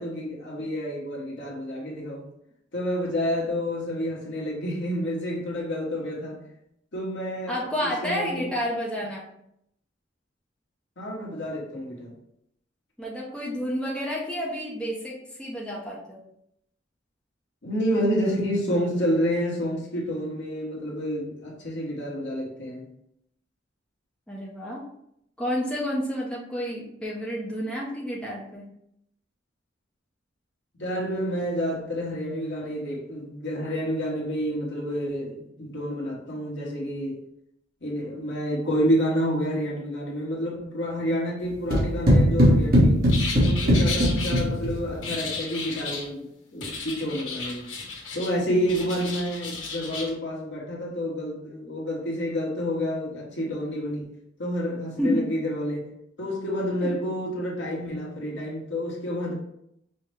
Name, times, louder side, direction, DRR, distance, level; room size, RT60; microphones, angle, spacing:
voice 1, 0.0-2.3 2.7-6.4 6.9-8.5 11.0-12.1 17.6-22.9 30.8-37.2 37.8-43.0 43.3-47.7 48.1-54.1 54.4-55.9 56.2-59.3, equal, 65° left, -3 dB, 1.1 m, -29 dB
voice 2, 7.5-9.3 13.0-16.2 24.3-24.8 25.4-28.7 43.9-44.3 55.0-55.3 56.8-56.9, equal, 5° left, -4 dB, 0.6 m, -30 dB
sound 1, 41.7-44.9, equal, 50° right, 1.3 m, -19 dB
sound 2, 43.1-44.4 45.0-46.1 46.6-48.3 48.6-50.1, left 4 dB, 80° left, 1.3 m, -34 dB
5.4 x 2.1 x 3.3 m, 0.76 s
head